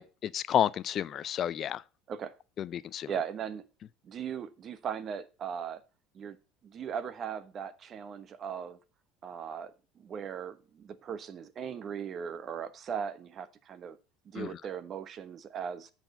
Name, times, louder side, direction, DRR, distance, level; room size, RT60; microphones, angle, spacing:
voice 1, 0.0-1.8 2.6-3.1 14.4-14.5, left 10 dB, 45° left, 0.4 m, -30 dB
voice 2, 3.1-3.6 4.0-5.8 6.1-6.4 6.6-8.8 9.2-14.0 14.2-15.9, right 7 dB, 45° right, 1.0 m, -38 dB
7.8 x 4.4 x 6.9 m
hypercardioid pair, 75°, 0 cm